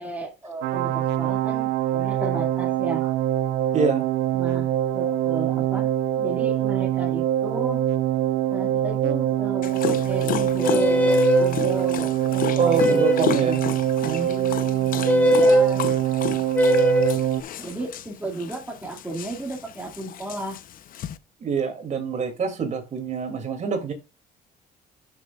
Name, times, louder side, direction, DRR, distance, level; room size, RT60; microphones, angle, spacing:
voice 1, 0.0-3.2 4.3-5.9 6.2-7.8 8.5-13.6 15.3-15.9 17.6-20.6, right 2 dB, 10° right, 2.1 m, -34 dB
sound 1, 0.6-17.4, right 12 dB, 90° right, 0.7 m, -24 dB
voice 2, 3.7-4.1 12.6-13.6 14.0-15.3 17.6-17.7 21.4-23.9, right 5 dB, 45° right, 2.5 m, -26 dB
Dog, 9.6-21.2, left 10 dB, 55° left, 0.7 m, -33 dB
sound 2, 10.6-11.5 12.8-13.4 15.1-15.7 16.5-17.2, equal, 10° left, 1.0 m, -19 dB
12.0 x 6.2 x 2.3 m
cardioid pair, 110°, 17 cm